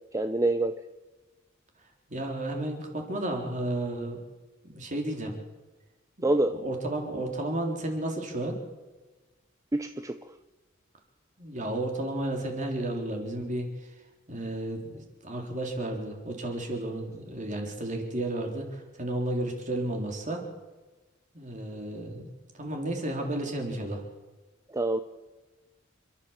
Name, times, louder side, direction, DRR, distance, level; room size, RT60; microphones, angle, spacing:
voice 1, 0.1-0.8 6.2-6.6 9.7-10.2 24.7-25.0, right 2 dB, 15° right, 9 dB, 0.6 m, -26 dB
voice 2, 2.1-4.2 4.7-5.3 6.2-8.6 11.4-13.7 14.3-20.4 21.3-22.3 22.5-24.0, right 1 dB, 40° right, 2 dB, 3.9 m, -32 dB
29.0 x 12.0 x 7.4 m, 1.2 s
head